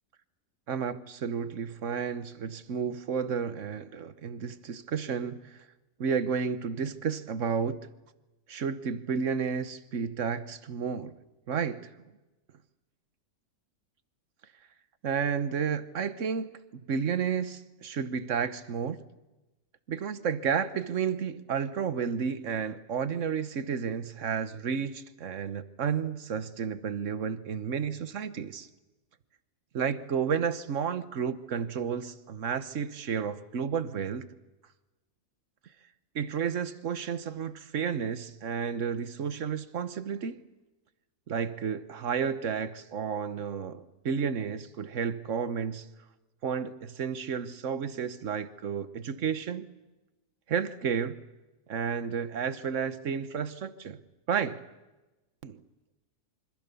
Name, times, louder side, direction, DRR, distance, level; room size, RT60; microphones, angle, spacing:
voice 1, 0.7-5.6 6.0-7.8 8.5-11.1 11.5-11.9 15.0-19.0 19.9-28.7 29.7-34.3 36.1-40.4 41.3-45.9 46.4-49.7 50.5-51.2 51.7-54.0 54.3-54.6 55.4-55.6, right 6 dB, 60° right, 1.4 m, -32 dB
26.5 x 25.5 x 6.9 m
omnidirectional pair, 1.5 m